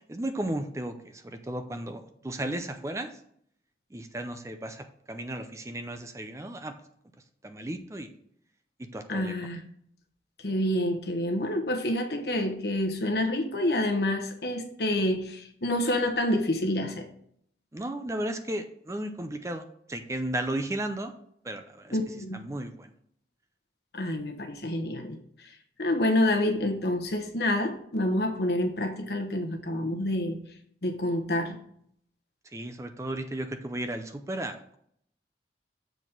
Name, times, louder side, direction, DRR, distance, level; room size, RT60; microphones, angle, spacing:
voice 1, 0.1-3.1 3.9-6.7 7.4-8.1 8.9-9.5 17.7-21.1 21.4-22.0 22.3-22.9 32.5-34.8, right 1 dB, 15° right, 8 dB, 0.4 m, -34 dB
voice 2, 9.1-9.6 10.4-17.0 21.9-22.4 23.9-25.2 25.8-30.4 30.8-31.6, left 1 dB, 65° left, 3 dB, 1.1 m, -28 dB
7.0 x 4.1 x 5.9 m, 0.67 s
head